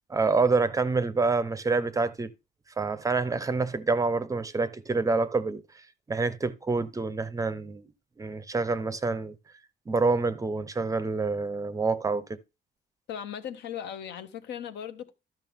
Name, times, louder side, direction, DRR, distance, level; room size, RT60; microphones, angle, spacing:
voice 1, 0.1-2.3 2.8-5.6 6.1-7.9 8.2-9.3 9.9-12.4, right 3 dB, 20° right, 0.5 m, -27 dB
voice 2, 13.1-15.1, left 9 dB, 75° left, 1.0 m, -37 dB
12.5 x 6.0 x 3.5 m
cardioid pair, 155°, 18 cm